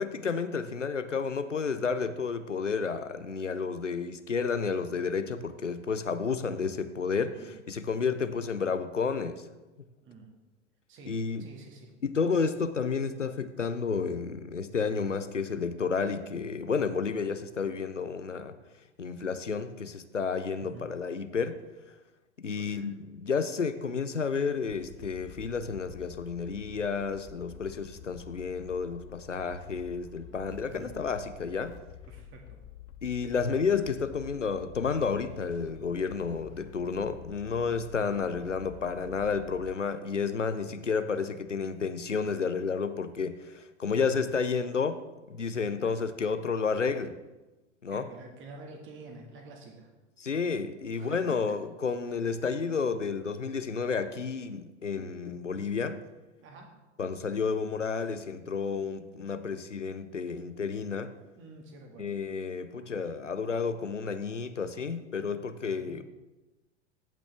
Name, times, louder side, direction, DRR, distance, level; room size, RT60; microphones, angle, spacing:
voice 1, 0.0-9.4 11.1-11.5 12.0-18.6 19.0-21.6 22.4-31.8 33.0-47.1 47.8-48.1 50.2-56.0 57.0-61.1 62.0-66.0, left 5 dB, 90° left, 11 dB, 0.6 m, -31 dB
voice 2, 10.9-11.9 20.6-20.9 22.5-22.8 30.7-30.9 32.1-32.6 45.8-46.0 47.9-49.9 50.9-51.6 56.4-56.7 61.4-62.2 62.7-63.0 65.8-66.0, right 3 dB, 35° right, 2 dB, 1.9 m, -48 dB
sound 1, 24.7-39.7, left 10 dB, 35° left, 0.5 m, -49 dB
15.0 x 6.0 x 3.3 m, 1.1 s
figure-of-eight pair, 85°, 36 cm